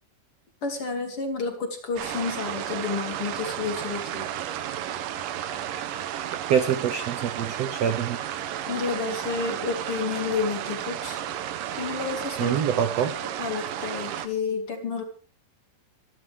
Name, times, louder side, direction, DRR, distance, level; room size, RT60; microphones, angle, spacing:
voice 1, 0.6-4.3 8.7-11.2 11.7-12.6 13.2-15.0, left 4 dB, 40° left, 4 dB, 3.2 m, -30 dB
sound 1, 2.0-14.3, right 11 dB, 70° right, 2.5 m, -33 dB
voice 2, 6.5-8.2 12.4-13.1, right 8 dB, 90° right, 8 dB, 1.4 m, -25 dB
25.5 x 11.5 x 3.5 m, 0.39 s
omnidirectional pair, 4.4 m